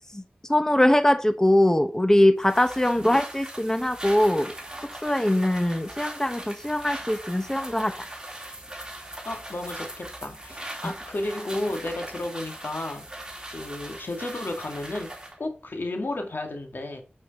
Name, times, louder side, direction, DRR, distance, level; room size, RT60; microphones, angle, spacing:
voice 1, 0.5-4.5 5.0-8.1, left 1 dB, 15° left, 1.0 m, -22 dB
sound 1, 2.4-15.4, right 1 dB, 20° right, 3.3 m, -40 dB
voice 2, 9.2-13.1 13.5-17.0, left 2 dB, 75° left, 2.2 m, -33 dB
9.2 x 6.6 x 4.3 m
wide cardioid pair, 50°, 3 cm